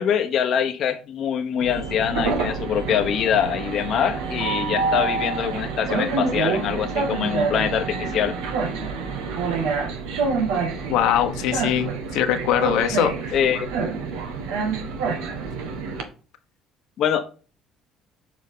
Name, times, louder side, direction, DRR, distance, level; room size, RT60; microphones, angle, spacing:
voice 1, 0.0-8.4 13.3-13.7 17.0-17.3, left 9 dB, 55° left, 0.9 m, -24 dB
Train, 1.6-16.0, right 4 dB, 85° right, 1.5 m, -27 dB
voice 2, 10.9-13.3, left 10 dB, 80° left, 1.1 m, -22 dB
7.6 x 5.1 x 3.8 m
cardioid pair, 100°, 0 cm